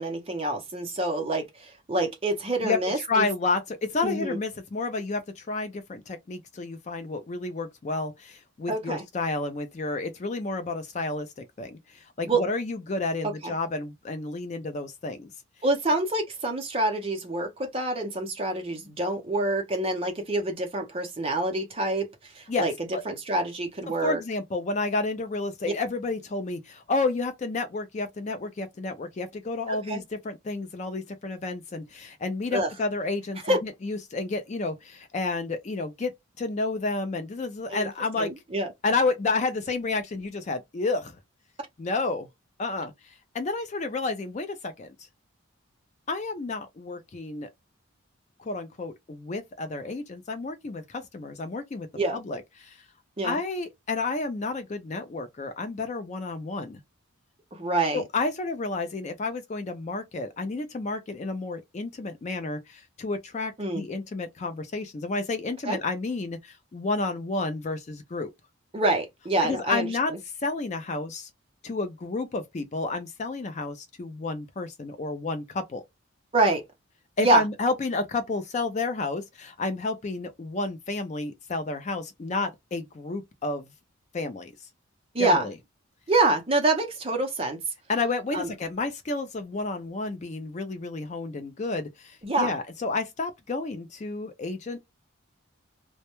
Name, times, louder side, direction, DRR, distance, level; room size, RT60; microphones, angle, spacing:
voice 1, 0.0-3.3 4.0-4.4 8.7-9.0 12.3-12.4 13.2-13.5 15.6-22.7 23.1-24.2 29.7-30.0 32.5-32.7 33.4-33.6 37.7-37.9 38.2-38.7 51.9-52.2 53.2-53.4 57.5-58.0 63.6-63.8 65.7-65.8 68.7-70.2 76.3-76.6 77.2-77.4 85.1-85.5 86.1-87.6 88.3-88.5 92.2-92.5, right 2 dB, 25° right, 0.6 m, -26 dB
voice 2, 2.6-15.3 22.5-22.7 22.9-23.0 24.0-36.1 36.4-38.3 38.8-41.2 41.8-42.3 42.6-45.0 46.1-47.5 48.4-51.9 52.1-52.8 53.2-56.8 57.9-68.3 69.4-70.1 70.4-71.3 71.6-75.8 77.2-83.7 84.1-84.5 85.2-85.5 87.9-94.8, left 3 dB, 35° left, 0.3 m, -31 dB
2.1 x 2.1 x 2.9 m
head